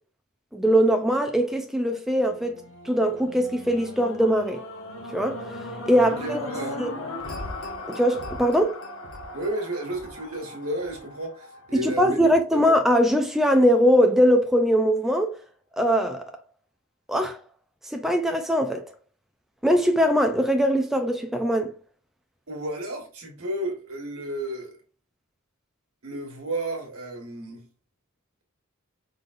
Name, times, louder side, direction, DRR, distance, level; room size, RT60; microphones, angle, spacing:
voice 1, 0.5-2.6 2.8-4.6 5.1-5.4 5.9-6.5 6.8-6.9 7.9-8.8 11.7-15.3 15.8-16.3 17.1-17.4 17.8-18.9 19.6-21.7, equal, ahead, 0.4 m, -21 dB
sound 1, 2.2-12.4 13.0-13.1, left 2 dB, 65° left, 1.1 m, -38 dB
voice 2, 6.0-6.8 9.3-12.2 12.5-12.6 22.5-24.7 26.0-27.6, right 1 dB, 75° right, 1.7 m, -32 dB
5.1 x 3.8 x 2.5 m
head